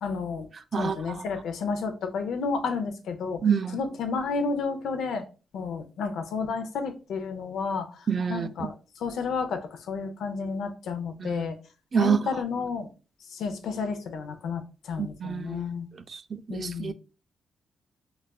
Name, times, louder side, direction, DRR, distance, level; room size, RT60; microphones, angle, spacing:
voice 1, 0.0-3.4 3.7-5.2 5.5-11.6 12.0-12.9 13.3-15.9 16.5-16.9, left 5 dB, 80° left, 0.5 m, -31 dB
voice 2, 0.7-1.2 3.4-3.8 8.1-8.7 11.2-11.4 11.9-12.2 15.0-15.6 16.1-16.9, right 7 dB, 50° right, 0.3 m, -27 dB
4.0 x 2.3 x 2.2 m
cardioid pair, 70°, 0 cm